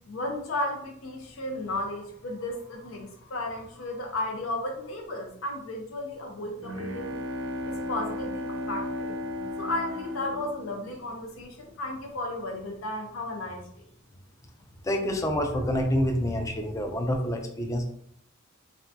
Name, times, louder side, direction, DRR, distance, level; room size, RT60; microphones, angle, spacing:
voice 1, 0.1-7.2 7.7-9.1 9.6-13.6, left 1 dB, 90° left, 2 dB, 0.5 m, -34 dB
Bowed string instrument, 6.3-11.8, left 1 dB, 75° right, 0.4 m, -35 dB
voice 2, 14.8-17.8, equal, 15° left, 3 dB, 0.4 m, -27 dB
3.4 x 2.2 x 2.6 m, 0.66 s
head